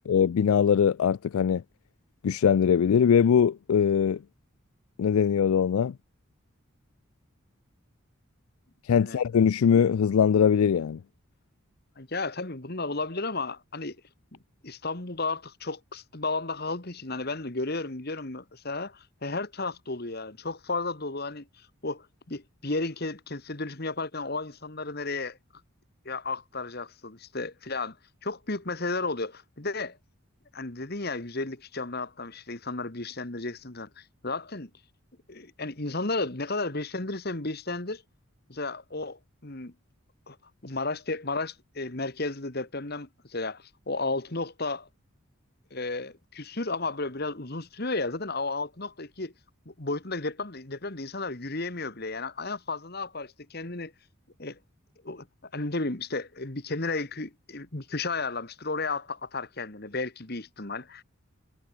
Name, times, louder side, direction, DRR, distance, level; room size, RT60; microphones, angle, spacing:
voice 1, 0.1-1.6 2.2-4.2 5.0-5.9 8.9-11.0, left 7 dB, 80° left, 0.4 m, -22 dB
voice 2, 12.0-14.0 14.3-21.5 21.8-25.4 26.1-28.0 28.2-30.0 30.5-34.7 35.3-38.0 38.5-39.7 40.3-40.4 40.6-44.9 45.7-49.3 49.7-53.9 54.4-54.6 55.0-55.3 55.5-61.0, left 3 dB, 45° left, 1.8 m, -33 dB
head